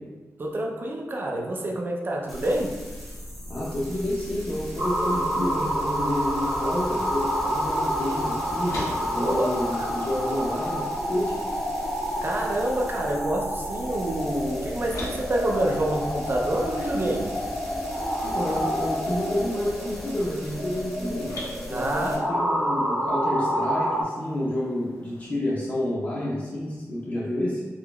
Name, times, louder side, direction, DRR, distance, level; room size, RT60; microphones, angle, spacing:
voice 1, 0.4-2.7 9.2-9.5 12.2-17.4 21.7-22.2, right 1 dB, 40° right, 0 dB, 0.5 m, -27 dB
sound 1, 2.3-22.2, equal, ahead, 0.8 m, -39 dB
voice 2, 3.5-8.8 9.1-11.4 18.2-21.3 21.7-27.6, left 1 dB, 30° left, -7 dB, 0.5 m, -29 dB
sound 2, 4.8-24.0, equal, 85° right, 1.3 m, -29 dB
sound 3, 7.2-25.3, left 1 dB, 80° left, 0.8 m, -44 dB
3.7 x 2.9 x 2.3 m, 1.3 s
wide cardioid pair, 125°, 6 cm